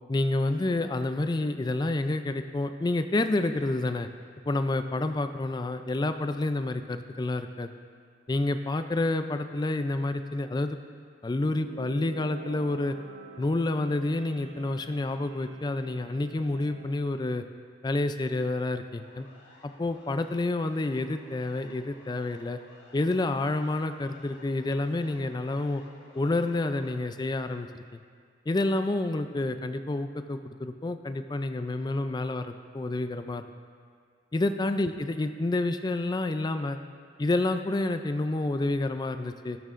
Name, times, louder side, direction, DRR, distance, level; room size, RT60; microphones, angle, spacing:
voice 1, 0.1-4.1 4.5-7.7 8.3-10.8 11.2-13.0 13.4-17.4 17.8-19.3 19.6-22.6 22.9-25.8 26.1-28.0 28.5-33.5 34.3-36.8 37.2-39.6, left 2 dB, 20° left, 9 dB, 0.3 m, -29 dB
sound 1, 11.2-17.0, right 5 dB, 65° right, 0.7 m, -47 dB
Siren, 19.0-26.9, left 2 dB, 65° left, 1.6 m, -55 dB
12.5 x 12.0 x 2.5 m, 2.1 s
head